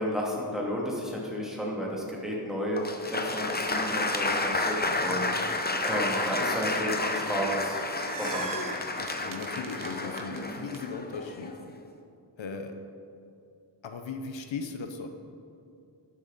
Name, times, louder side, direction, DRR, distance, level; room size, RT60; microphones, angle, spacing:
voice 1, 0.0-5.3 5.8-7.8 8.1-8.7, equal, ahead, -4 dB, 2.4 m, -32 dB
Applause, 2.8-11.7, left 2 dB, 20° left, 0.8 m, -31 dB
voice 2, 4.9-5.2 9.0-11.6 12.4-12.8 13.8-15.1, left 5 dB, 80° left, 6 dB, 0.8 m, -38 dB
Bark, 5.6-6.5 6.9-7.3 7.7-8.7 9.2-9.3 9.7-9.8 10.4-10.5, right 1 dB, 75° right, 2.5 m, -41 dB
sound 1, 7.7-10.8, right 4 dB, 45° right, 0.9 m, -41 dB
12.5 x 7.6 x 4.1 m, 2.6 s
wide cardioid pair, 75°, 45 cm